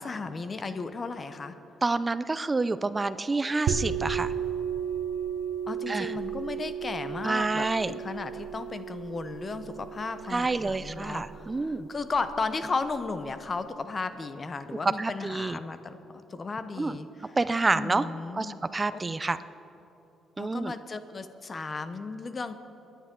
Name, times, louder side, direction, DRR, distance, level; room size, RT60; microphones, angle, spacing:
voice 1, 0.0-1.6 5.7-16.0 16.3-17.4 17.7-18.6 18.9-19.0 20.4-22.5, left 4 dB, 35° left, 11 dB, 0.8 m, -35 dB
voice 2, 1.8-4.3 5.9-6.1 7.2-7.9 10.3-11.9 14.8-15.6 16.8-17.0 17.4-18.1 18.4-19.4 20.4-20.7, right 3 dB, 25° right, 14 dB, 0.4 m, -28 dB
sound 1, 3.7-13.0, right 8 dB, 85° right, 0.7 m, -34 dB
23.0 x 10.0 x 3.7 m, 3.0 s
cardioid pair, 90°, 0 cm